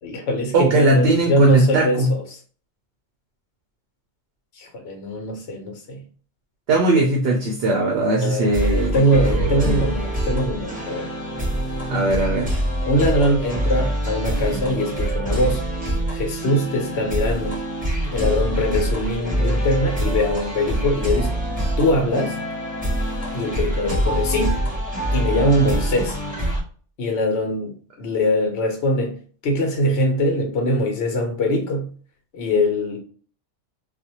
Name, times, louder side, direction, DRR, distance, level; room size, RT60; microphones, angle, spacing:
voice 1, 0.0-2.2 4.6-6.0 8.2-11.1 12.9-15.6 16.1-17.6 18.1-21.4 21.8-22.4 23.3-24.5 25.1-26.2 27.0-29.2 29.4-31.9 32.3-33.0, equal, 60° left, 1.0 m, -22 dB
voice 2, 0.5-2.1 6.7-9.8 11.9-12.6, right 2 dB, 65° right, 0.7 m, -20 dB
sound 1, 8.4-26.6, right 1 dB, 10° right, 0.6 m, -25 dB
2.4 x 2.1 x 2.7 m
omnidirectional pair, 1.3 m